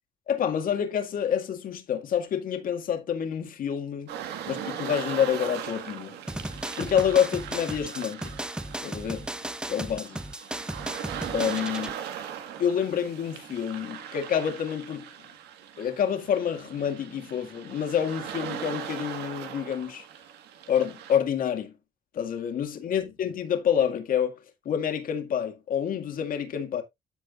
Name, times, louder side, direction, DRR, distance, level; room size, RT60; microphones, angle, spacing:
voice 1, 0.3-4.1 4.5-6.2 6.8-8.3 8.8-9.3 9.7-10.2 11.3-12.0 12.6-15.1 15.8-20.0 20.7-21.7 22.1-24.4 24.7-26.8, left 8 dB, 55° left, 2.0 m, -28 dB
sound 1, 4.1-21.2, right 9 dB, 80° right, 1.6 m, -39 dB
sound 2, 6.3-11.9, right 1 dB, 5° right, 0.5 m, -35 dB
14.0 x 5.0 x 2.5 m
cardioid pair, 110°, 17 cm